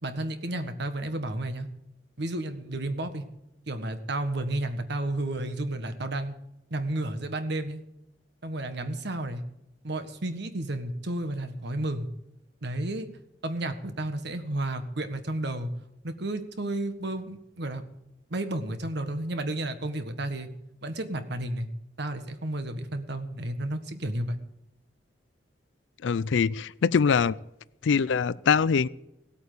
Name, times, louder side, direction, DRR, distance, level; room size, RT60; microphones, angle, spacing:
voice 1, 0.0-1.7 2.2-3.2 3.7-6.3 6.7-7.8 8.4-9.4 9.8-12.1 12.6-13.1 13.4-15.7 16.0-17.8 18.3-20.5 20.8-21.7 22.0-24.4, right 1 dB, 65° right, 9 dB, 1.5 m, -32 dB
voice 2, 26.0-27.3 27.8-28.9, left 6 dB, 75° left, 20 dB, 0.4 m, -23 dB
17.0 x 8.5 x 6.8 m, 0.87 s
head